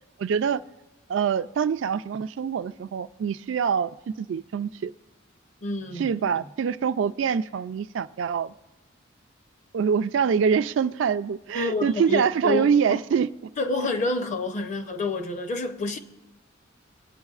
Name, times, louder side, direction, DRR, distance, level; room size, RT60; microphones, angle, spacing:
voice 1, 0.2-0.6 1.1-4.9 6.0-8.5 9.7-13.3 13.8-13.9, right 7 dB, 60° right, 0.3 m, -25 dB
voice 2, 5.6-6.1 6.3-6.4 11.5-13.0 13.6-16.0, left 3 dB, 35° left, 0.7 m, -28 dB
24.0 x 8.8 x 2.4 m
head